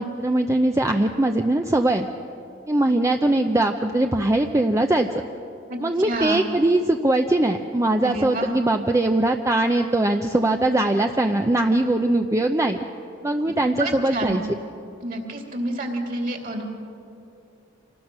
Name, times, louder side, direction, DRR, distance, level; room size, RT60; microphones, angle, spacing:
voice 1, 0.0-2.1 2.7-5.2 5.8-12.8 13.2-14.4, right 1 dB, 15° right, 4 dB, 0.6 m, -21 dB
voice 2, 5.7-6.4 8.0-8.5 13.4-13.5 13.8-14.4 15.0-16.6, right 2 dB, 45° right, 2 dB, 2.8 m, -29 dB
26.5 x 19.0 x 6.2 m, 2.7 s
head